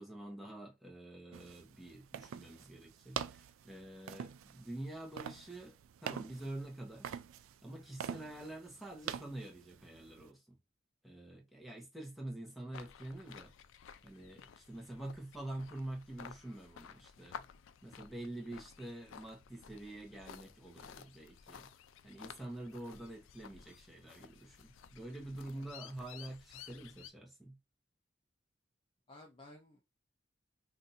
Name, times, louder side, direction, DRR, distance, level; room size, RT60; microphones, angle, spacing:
voice 1, 0.0-7.2 7.6-10.4 11.0-13.5 14.0-17.4 17.8-21.7 22.0-27.6, right 1 dB, ahead, 0.9 m, -47 dB
sound 1, 1.3-10.3, right 8 dB, 90° right, 0.3 m, -46 dB
sound 2, 12.7-27.1, left 7 dB, 75° left, 0.4 m, -54 dB
voice 2, 25.5-26.0 29.1-29.9, left 1 dB, 25° left, 0.5 m, -57 dB
2.6 x 2.5 x 4.1 m
head